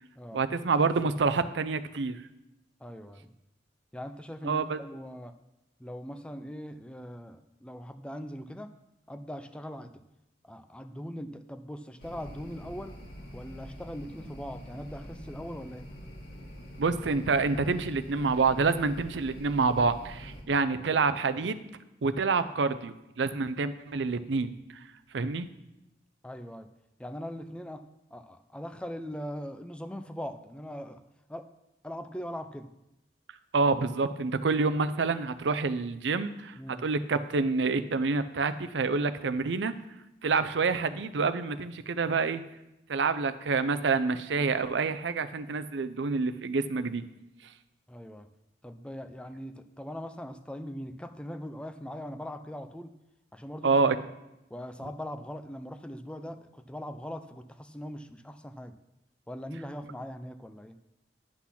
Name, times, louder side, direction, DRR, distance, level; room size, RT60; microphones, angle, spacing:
voice 1, 0.3-2.2 4.4-4.8 16.8-21.6 22.0-24.5 25.1-25.5 33.5-36.5 36.8-39.7 40.2-42.4 42.9-47.0 53.6-54.0, right 4 dB, 80° right, 11 dB, 0.5 m, -27 dB
voice 2, 2.8-3.3 3.9-5.3 5.8-8.7 9.1-10.0 10.4-13.0 13.3-15.9 26.2-26.7 27.0-27.8 28.1-31.0 31.3-31.5 31.8-32.7 36.6-36.8 47.9-48.3 48.6-52.9 53.3-54.0 54.5-58.8 59.3-60.8, equal, 5° left, 10 dB, 0.4 m, -41 dB
sound 1, 12.0-20.4, equal, 60° left, 1.8 m, -45 dB
9.9 x 6.0 x 5.8 m, 0.91 s
head